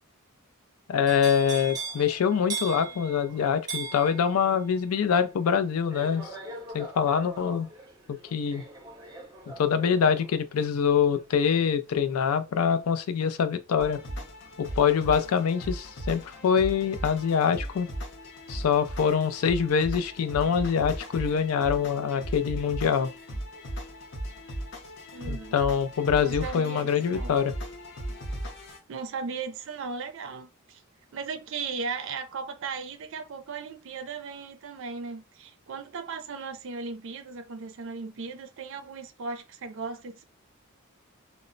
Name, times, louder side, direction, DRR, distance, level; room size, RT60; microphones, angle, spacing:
voice 1, 0.9-6.3 6.7-7.7 8.1-8.6 9.6-14.0 14.6-17.9 18.5-23.1 25.3-27.5, left 7 dB, 85° left, 0.4 m, -25 dB
sound 1, 1.1-13.0 13.4-13.8, right 4 dB, 20° right, 0.6 m, -41 dB
sound 2, 13.8-28.8, equal, 55° left, 0.7 m, -37 dB
voice 2, 25.1-25.6 26.2-27.4 28.9-30.8 31.1-40.3, right 4 dB, 60° right, 0.4 m, -37 dB
2.0 x 2.0 x 3.7 m
head